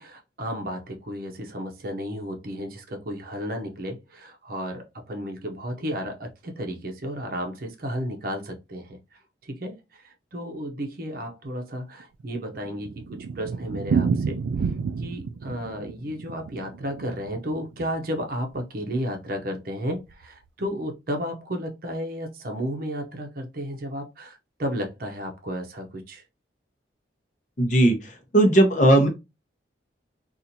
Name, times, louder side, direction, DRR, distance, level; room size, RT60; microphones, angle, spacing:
voice 1, 0.0-9.0 9.4-14.7 15.0-26.2, equal, 50° right, 0.7 m, -33 dB
Thunder, 12.0-18.3 18.5-18.6 18.9-19.0 19.3-19.4 19.9-20.3, right 5 dB, 90° right, 0.3 m, -30 dB
voice 2, 27.6-29.1, right 1 dB, 40° left, 0.8 m, -18 dB
4.1 x 2.5 x 2.7 m
head